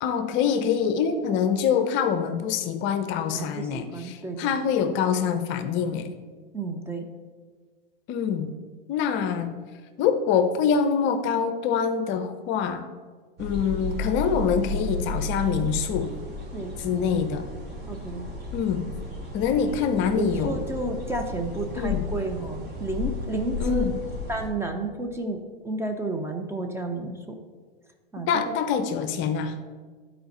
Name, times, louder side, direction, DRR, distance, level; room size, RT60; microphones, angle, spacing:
voice 1, 0.0-6.1 8.1-8.5 8.9-9.6 10.0-12.8 13.4-16.1 16.8-17.5 18.5-18.9 19.3-20.6 21.8-22.1 23.6-23.9 28.3-29.6, left 7 dB, 40° left, 10 dB, 0.6 m, -25 dB
voice 2, 3.3-4.6 6.5-7.0 16.5-17.2 17.9-18.3 20.2-23.8 24.3-27.2 28.1-28.3, right 2 dB, 10° right, 4 dB, 0.6 m, -31 dB
sound 1, 13.4-24.5, left 2 dB, 35° right, 2.4 m, -33 dB
10.5 x 4.4 x 4.2 m, 1.5 s
hypercardioid pair, 110°, 30 cm